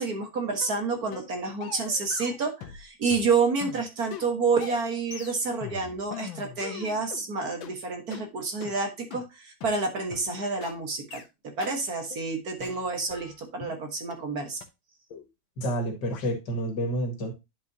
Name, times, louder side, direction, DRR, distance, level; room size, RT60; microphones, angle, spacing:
voice 1, 0.0-14.6, right 4 dB, 50° right, 4 dB, 1.8 m, -29 dB
sound 1, 0.6-0.8 1.1-1.3 1.6-2.8 3.1-7.2 7.6-7.7 8.1-8.2 8.6-8.7 9.1-9.2 9.6-9.7 10.1-10.2 10.6-10.7 11.1-11.3 11.6-11.8 12.1-12.3 12.6-13.8 14.1-14.2 14.6-14.7 15.1-15.3 15.6-15.8 16.1-16.3, left 8 dB, 75° left, 1.8 m, -42 dB
voice 2, 15.6-17.3, right 1 dB, 60° left, 4 dB, 2.5 m, -29 dB
10.5 x 5.3 x 2.8 m, 0.24 s
omnidirectional pair, 2.2 m